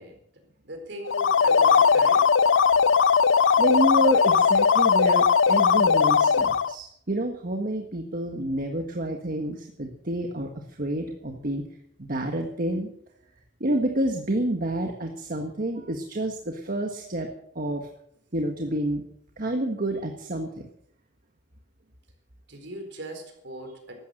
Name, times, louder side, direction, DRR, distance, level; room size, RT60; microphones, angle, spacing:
voice 1, 0.0-2.3 22.5-24.0, right 1 dB, 65° right, 5 dB, 4.3 m, -40 dB
sound 1, 1.0-6.7, left 6 dB, 85° left, 0.5 m, -19 dB
voice 2, 3.6-11.6 12.0-12.9 13.6-17.3 17.5-17.9 18.3-19.0 19.4-20.7, right 1 dB, 50° right, 3 dB, 1.5 m, -28 dB
15.0 x 12.5 x 6.6 m, 0.70 s
head